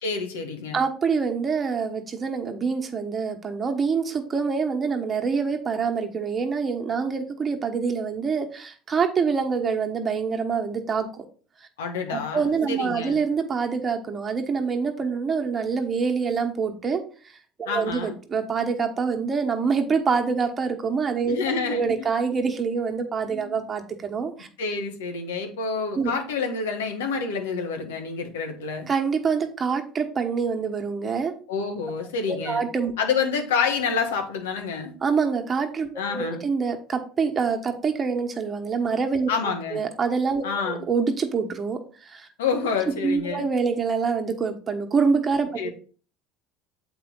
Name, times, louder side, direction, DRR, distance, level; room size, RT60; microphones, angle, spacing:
voice 1, 0.0-0.8 11.8-13.2 17.6-18.1 21.3-21.9 23.4-23.6 24.6-28.9 31.5-32.6 33.0-34.9 36.0-36.4 39.3-39.8 40.4-40.8 42.4-43.4 45.6-45.7, left 5 dB, 85° left, 4 dB, 1.4 m, -28 dB
voice 2, 0.7-11.2 12.1-21.4 21.7-24.5 26.0-26.1 28.9-31.3 32.3-32.9 35.0-39.3 39.7-42.3 43.0-45.7, right 5 dB, 30° right, 4 dB, 1.1 m, -26 dB
7.4 x 4.5 x 3.9 m, 0.41 s
hypercardioid pair, 80°, 0 cm